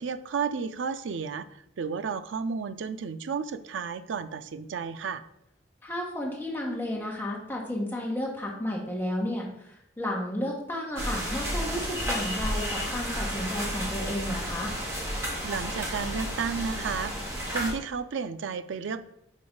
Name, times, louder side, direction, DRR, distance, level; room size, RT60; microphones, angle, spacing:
voice 1, 0.0-5.2 15.4-19.0, right 5 dB, 80° right, 11 dB, 0.4 m, -32 dB
voice 2, 5.8-14.7, left 1 dB, 10° left, -2 dB, 1.3 m, -32 dB
sound 1, 11.0-17.7, equal, 15° right, 1.3 m, -32 dB
5.4 x 3.8 x 5.2 m, 0.79 s
head